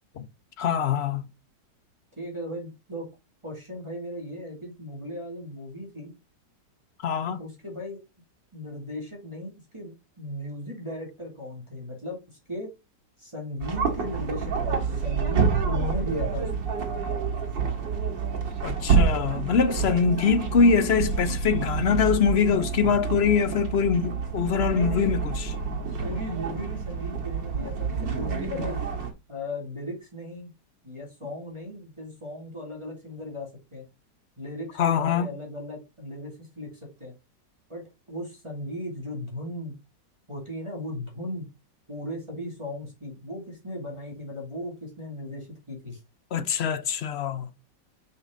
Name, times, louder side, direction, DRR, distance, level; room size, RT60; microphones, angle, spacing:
voice 1, 0.6-1.3 7.0-7.4 18.6-25.3 34.8-35.3 46.3-47.5, left 6 dB, 60° left, 0.7 m, -23 dB
voice 2, 2.2-3.1 3.4-6.1 7.4-8.0 8.5-12.7 13.2-16.7 24.5-25.1 26.0-28.8 29.3-30.5 30.8-33.8 34.4-37.1 37.7-39.7 40.3-41.5 41.9-46.0, left 1 dB, 15° right, 2.7 m, -37 dB
sound 1, 13.6-29.1, right 5 dB, 85° right, 2.6 m, -28 dB
6.3 x 5.4 x 3.8 m
omnidirectional pair, 1.9 m